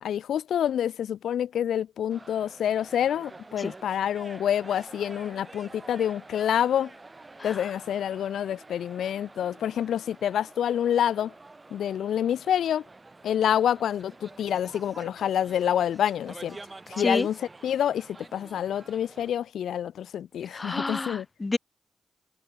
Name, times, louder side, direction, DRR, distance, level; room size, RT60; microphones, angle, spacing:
voice 1, 0.0-6.9 7.4-11.3 11.7-12.8 13.2-16.6 16.9-21.3, left 10 dB, 85° left, 0.8 m, -27 dB
sound 1, 2.1-19.3, right 3 dB, 30° right, 2.8 m, -48 dB
voice 2, 20.5-21.6, left 3 dB, 30° left, 0.4 m, -29 dB
cardioid pair, 55°, 0 cm